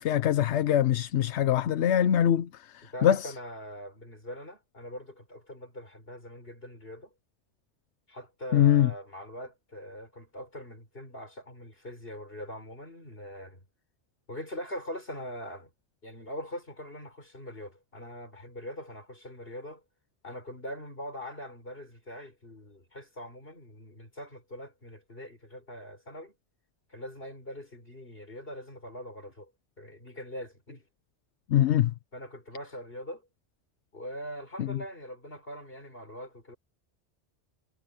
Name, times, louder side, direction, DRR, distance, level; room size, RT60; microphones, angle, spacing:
voice 1, 0.0-3.3 8.5-8.9 31.5-31.9 34.6-34.8, left 10 dB, 85° left, 1.0 m, -23 dB
voice 2, 2.8-7.1 8.1-13.6 14.3-15.7 16.0-19.8 20.2-26.3 26.9-29.5 29.8-30.9 32.1-33.3 33.9-36.6, equal, 60° left, 6.9 m, -42 dB
omnidirectional pair, 1.1 m